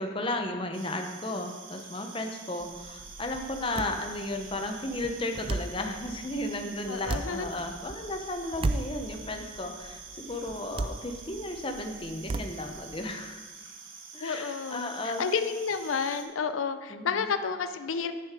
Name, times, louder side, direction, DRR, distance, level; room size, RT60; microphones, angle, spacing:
voice 1, 0.0-13.5 14.1-15.2 16.9-17.3, left 1 dB, 25° left, 4 dB, 0.8 m, -34 dB
sound 1, 0.7-16.2, right 4 dB, 85° right, 1.4 m, -47 dB
sound 2, 2.6-13.1, right 2 dB, 25° right, 0.3 m, -37 dB
voice 2, 6.9-7.5 14.2-18.1, left 5 dB, 90° left, 10 dB, 0.5 m, -31 dB
9.7 x 7.1 x 5.0 m, 1.3 s
head